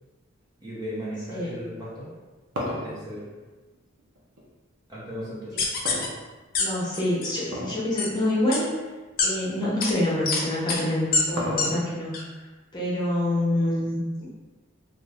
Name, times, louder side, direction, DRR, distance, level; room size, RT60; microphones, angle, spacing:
voice 1, 0.6-2.1 2.8-3.2 4.9-5.7, equal, 20° right, -8 dB, 0.8 m, -36 dB
sound 1, 2.0-4.5 5.8-6.7 7.4-7.9 8.2-8.3 9.1-9.2 10.6-12.1, equal, 80° right, 0.7 m, -33 dB
sound 2, 5.6-6.1 6.5-6.6 6.9-7.3 8.0-8.1 8.5-8.6 9.2-9.3 9.8-9.9 10.3-10.4 10.7-10.8 11.1-11.2 11.6-11.7 12.1-12.2, left 4 dB, 45° left, 0.5 m, -24 dB
voice 2, 6.6-8.7 9.2-12.1 12.7-14.3, left 1 dB, 20° left, -7 dB, 0.8 m, -26 dB
2.6 x 2.5 x 3.3 m, 1.2 s
head